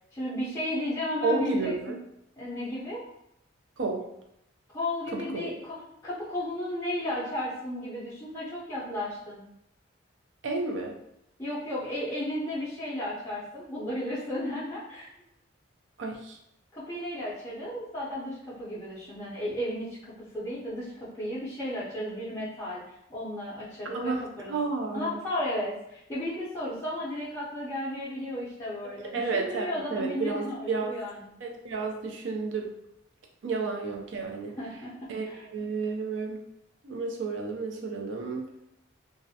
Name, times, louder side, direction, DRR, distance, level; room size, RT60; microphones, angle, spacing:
voice 1, 0.1-1.9 2.4-3.0 4.7-9.4 11.4-15.1 16.7-24.5 24.9-31.3 34.6-35.4, left 1 dB, 15° left, -10 dB, 0.5 m, -34 dB
voice 2, 1.2-2.0 3.8-4.0 5.1-5.5 10.4-10.9 16.0-16.4 23.9-24.2 24.5-25.2 29.1-30.9 31.4-32.7 33.4-34.5 35.1-36.4 36.8-38.4, right 4 dB, 65° right, 2 dB, 0.4 m, -31 dB
2.4 x 2.1 x 2.6 m, 0.79 s
head